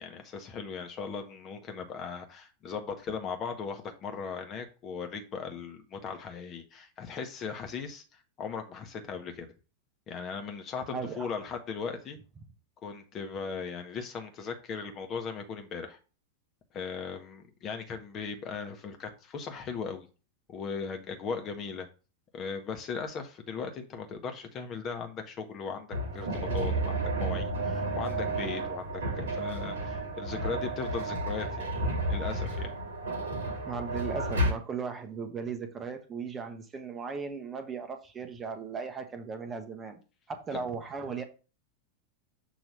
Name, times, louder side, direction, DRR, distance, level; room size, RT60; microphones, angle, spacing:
voice 1, 0.0-9.5 10.1-12.2 12.8-16.0 16.7-20.1 20.5-21.9 22.3-31.7 32.1-32.7, left 5 dB, 30° left, 1.0 m, -38 dB
voice 2, 10.9-11.3 33.6-40.0 40.3-41.2, right 5 dB, 20° right, 0.8 m, -37 dB
sound 1, 25.9-34.5, right 1 dB, 65° right, 1.2 m, -32 dB
6.7 x 3.0 x 5.4 m
figure-of-eight pair, 90°, 0 cm